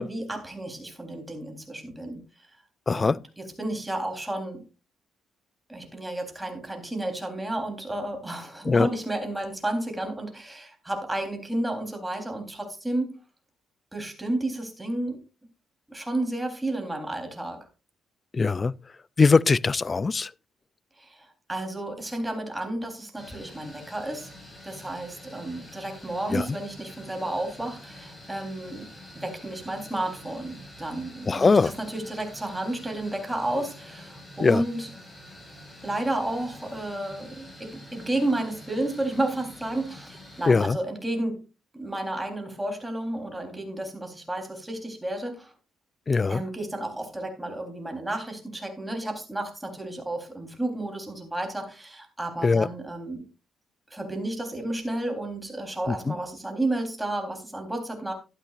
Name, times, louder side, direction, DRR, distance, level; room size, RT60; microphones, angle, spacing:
voice 1, 0.0-2.2 2.9-4.7 5.7-13.2 13.9-15.2 15.9-17.6 21.0-24.3 24.6-28.9 29.1-34.9 35.8-41.4 41.7-45.5 46.3-53.2 53.9-58.1, right 1 dB, 10° right, 3.6 m, -32 dB
voice 2, 2.9-3.2 8.7-8.9 18.3-18.7 19.2-20.3 26.3-26.5 31.3-31.7 34.4-34.6 40.5-40.8 46.1-46.4 52.4-52.7 55.9-56.1, left 4 dB, 30° left, 0.4 m, -21 dB
sound 1, 23.2-40.5, left 1 dB, 15° left, 6.1 m, -47 dB
13.0 x 11.5 x 2.5 m
cardioid pair, 90°, 0 cm